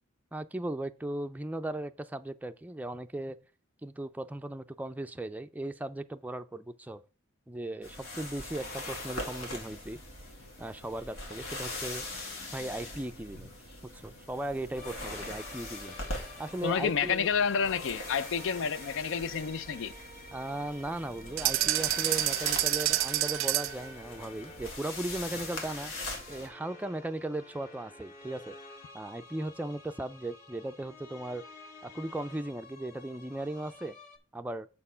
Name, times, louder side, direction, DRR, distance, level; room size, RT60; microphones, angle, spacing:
voice 1, 0.3-3.4 3.8-7.0 7.5-10.0 10.6-12.0 12.5-13.5 13.9-16.0 16.4-17.3 20.3-25.9 26.3-28.6 28.9-31.4 31.8-33.9 34.3-34.7, right 1 dB, 10° right, 0.4 m, -37 dB
sound 1, 7.8-26.5, left 2 dB, 85° left, 2.1 m, -42 dB
sound 2, 14.7-34.2, left 2 dB, 45° left, 1.8 m, -51 dB
voice 2, 16.6-19.9, left 6 dB, 70° left, 0.5 m, -29 dB
sound 3, 21.4-23.9, right 16 dB, 85° right, 0.4 m, -28 dB
7.2 x 4.4 x 5.5 m
head